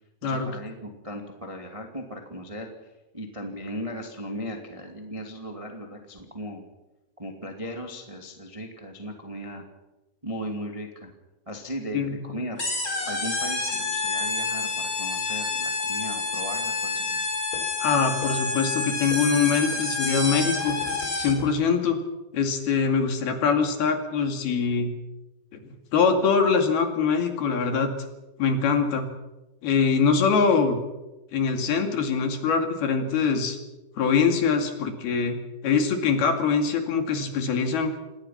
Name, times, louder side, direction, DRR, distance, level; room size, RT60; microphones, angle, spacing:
voice 1, 0.2-6.6 7.2-9.6 10.2-11.1 11.4-12.6 13.0-17.2, equal, 15° right, 3 dB, 1.3 m, -37 dB
sound 1, 12.6-21.5, left 3 dB, 20° left, 4.0 m, -28 dB
voice 2, 17.8-20.8 21.2-22.0 22.3-24.9 25.5-27.9 28.4-29.1 29.6-30.8 31.3-33.6 34.0-35.4 35.6-37.9, left 5 dB, 60° left, 5 dB, 4.1 m, -23 dB
27.0 x 19.5 x 5.9 m, 1.0 s
omnidirectional pair, 5.2 m